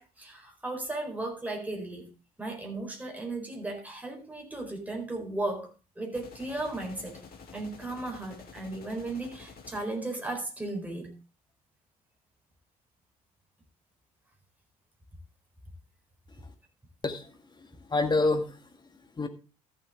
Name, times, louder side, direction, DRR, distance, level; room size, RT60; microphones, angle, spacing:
voice 1, 0.0-2.1 2.4-7.2 7.5-11.1, right 2 dB, 10° right, 2 dB, 4.3 m, -36 dB
sound 1, 6.1-10.2, left 5 dB, 50° left, 2.2 m, -50 dB
voice 2, 17.0-18.7 19.2-19.3, left 3 dB, 25° left, 7 dB, 1.8 m, -29 dB
13.5 x 7.5 x 3.6 m, 0.31 s
figure-of-eight pair, 50°, 19 cm